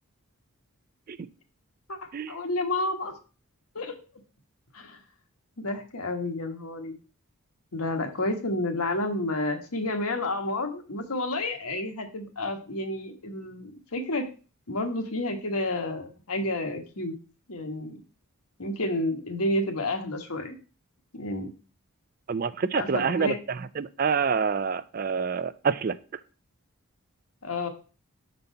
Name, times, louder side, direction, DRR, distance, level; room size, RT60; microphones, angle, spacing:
voice 1, 2.3-3.1 3.7-4.0 4.7-5.0 5.6-7.0 7.7-14.3 14.7-17.1 17.5-18.0 18.6-20.6 21.1-21.5 22.7-23.4 27.4-27.7, left 2 dB, 80° left, 1.4 m, -30 dB
voice 2, 22.3-26.0, right 5 dB, 40° right, 0.3 m, -27 dB
7.0 x 4.0 x 5.5 m
head